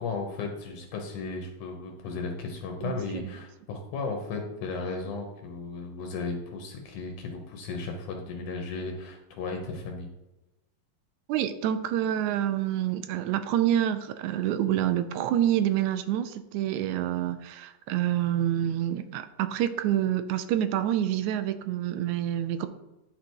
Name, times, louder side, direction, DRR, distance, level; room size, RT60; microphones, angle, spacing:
voice 1, 0.0-10.1, left 3 dB, 75° left, 3 dB, 2.4 m, -35 dB
voice 2, 2.8-3.2 11.3-22.7, right 11 dB, 80° right, 11 dB, 1.8 m, -27 dB
10.5 x 5.0 x 4.6 m, 1.0 s
omnidirectional pair, 3.7 m